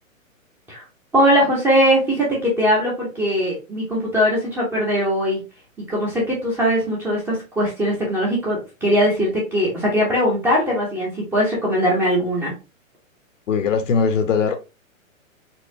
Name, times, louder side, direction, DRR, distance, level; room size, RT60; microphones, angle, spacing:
voice 1, 1.1-5.4 5.9-12.5, equal, 5° right, 0.6 m, -20 dB
voice 2, 13.5-14.6, left 5 dB, 65° left, 0.8 m, -20 dB
4.2 x 2.2 x 2.7 m
hypercardioid pair, 140°, 41 cm